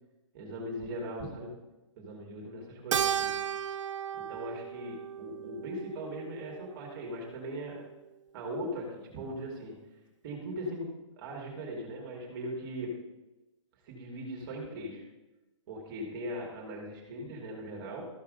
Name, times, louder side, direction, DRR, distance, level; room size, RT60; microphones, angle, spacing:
voice 1, 0.3-1.6 2.0-3.4 4.1-7.8 8.3-9.8 10.2-13.0 13.8-15.0 15.7-18.1, equal, 45° right, -2 dB, 2.6 m, -39 dB
Keyboard (musical), 2.9-7.5, right 9 dB, 75° right, 0.4 m, -35 dB
14.0 x 4.8 x 5.3 m, 1.1 s
hypercardioid pair, 150°, 16 cm